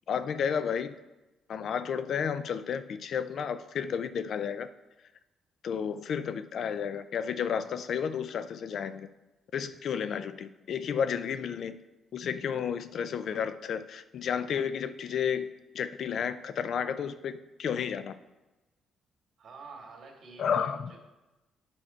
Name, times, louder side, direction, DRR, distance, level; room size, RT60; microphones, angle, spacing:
voice 1, 0.1-0.9 1.5-4.7 5.6-9.1 9.5-11.8 12.1-15.5 15.7-18.2 20.4-20.9, left 7 dB, 65° left, 13 dB, 0.4 m, -32 dB
voice 2, 19.4-21.0, right 4 dB, 55° right, 1 dB, 2.1 m, -48 dB
8.8 x 5.7 x 4.4 m, 1.1 s
cardioid pair, 90°, 0 cm